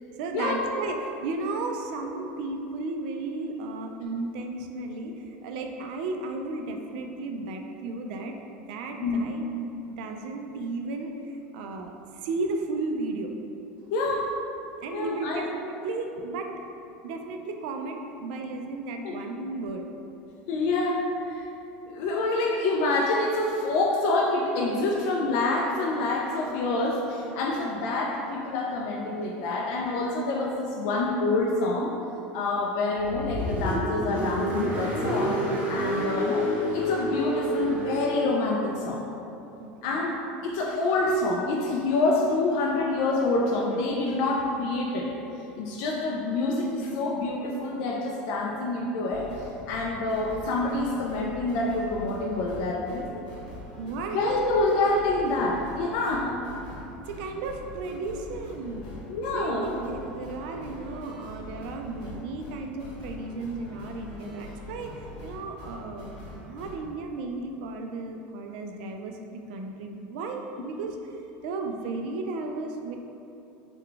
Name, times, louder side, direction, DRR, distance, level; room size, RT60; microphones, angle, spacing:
voice 1, 0.2-8.4 8.7-9.5 9.9-11.1 11.5-13.3 14.8-16.5 17.0-19.9 39.6-40.0 53.8-54.2 57.0-58.9 59.3-66.1 66.4-71.0 71.4-73.0, right 3 dB, 65° right, 3 dB, 0.3 m, -34 dB
voice 2, 13.9-14.3 14.9-15.4 19.0-19.1 20.5-21.4 21.9-31.9 32.3-36.5 36.7-39.0 39.8-45.1 45.6-53.2 54.1-56.4 59.1-59.7, left 2 dB, 60° left, -2 dB, 0.3 m, -27 dB
Car, 32.9-38.4, equal, 30° right, 0.7 m, -28 dB
sound 1, 49.1-66.8, left 1 dB, 90° left, 0.9 m, -43 dB
3.8 x 2.2 x 3.3 m, 2.9 s
supercardioid pair, 155°, 5 cm